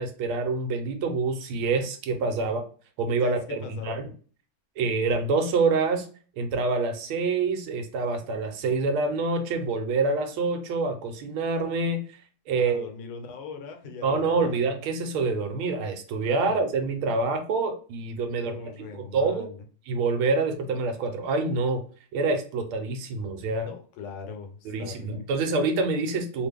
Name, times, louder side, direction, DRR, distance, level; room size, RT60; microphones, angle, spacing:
voice 1, 0.0-2.6 3.0-4.1 4.8-6.1 6.4-12.2 12.5-12.8 14.0-19.5 19.9-21.8 22.1-23.7 24.6-26.5, right 3 dB, 75° right, 5 dB, 1.5 m, -26 dB
voice 2, 2.1-2.5 3.2-4.0 12.6-14.6 16.2-16.6 18.3-19.6 23.6-25.5, left 4 dB, 75° left, 6 dB, 1.4 m, -41 dB
3.6 x 2.2 x 3.3 m, 0.41 s
omnidirectional pair, 2.4 m